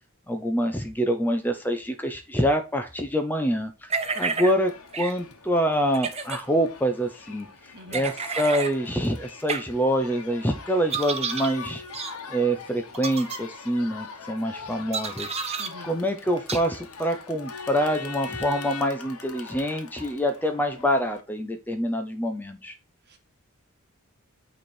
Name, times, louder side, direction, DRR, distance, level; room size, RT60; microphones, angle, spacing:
voice 1, 0.3-11.8 12.3-15.3 15.8-22.8, equal, 10° left, 7 dB, 0.6 m, -26 dB
sound 1, 3.9-4.5 4.9-5.1 5.9-6.4 7.9-8.7 9.5-9.6 10.9-11.5 11.9-12.1 12.9-13.4 14.9-15.7 16.5-16.6, right 5 dB, 30° right, 0.8 m, -30 dB
Crowd, 4.1-21.2, left 5 dB, 85° left, 1.1 m, -42 dB
voice 2, 7.7-8.2 15.6-16.0 23.1-23.2, equal, 50° right, 5 dB, 1.4 m, -45 dB
8.8 x 3.3 x 4.4 m, 0.30 s
head